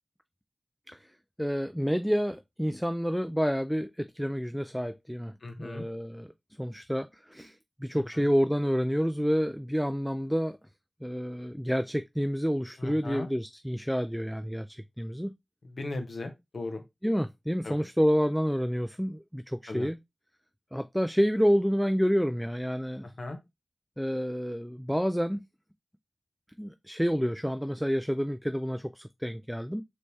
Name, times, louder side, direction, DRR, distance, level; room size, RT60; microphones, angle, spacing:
voice 1, 1.4-5.3 5.6-6.3 6.6-10.6 11.0-15.3 17.0-20.0 20.7-23.1 24.0-25.4 26.6-29.8, equal, ahead, 0.3 m, -29 dB
voice 2, 5.4-5.9 7.9-8.3 12.8-13.3 15.6-16.8 17.6-17.8 19.7-19.9 23.0-23.4, left 2 dB, 80° left, 1.0 m, -37 dB
4.1 x 3.2 x 3.4 m
wide cardioid pair, 55°, 0 cm